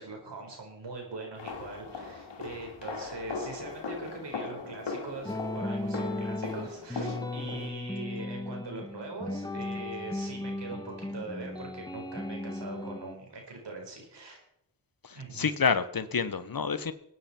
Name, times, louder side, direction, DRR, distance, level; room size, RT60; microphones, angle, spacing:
voice 1, 0.0-14.4 15.1-15.5, right 3 dB, 70° right, 1 dB, 4.9 m, -42 dB
sound 1, 1.4-7.7, left 4 dB, 80° left, 2.2 m, -39 dB
sound 2, 5.3-13.2, left 2 dB, 10° left, 1.5 m, -36 dB
voice 2, 15.0-16.9, left 5 dB, 55° left, 13 dB, 1.2 m, -28 dB
21.5 x 9.4 x 4.5 m, 0.78 s
cardioid pair, 45°, 43 cm